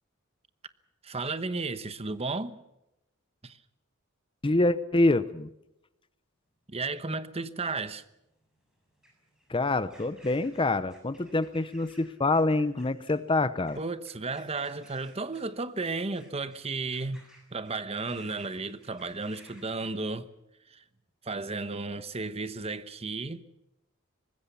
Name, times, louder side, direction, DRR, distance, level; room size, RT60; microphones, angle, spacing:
voice 1, 1.0-2.6 3.4-3.6 6.7-8.0 13.8-17.2 17.5-20.3 20.7-20.8 21.2-23.4, right 3 dB, 30° right, 1.0 m, -33 dB
voice 2, 4.4-5.5 9.5-13.8, left 2 dB, 25° left, 0.7 m, -26 dB
sound 1, 6.7-20.1, equal, 5° right, 7.2 m, -59 dB
24.5 x 20.0 x 7.0 m
head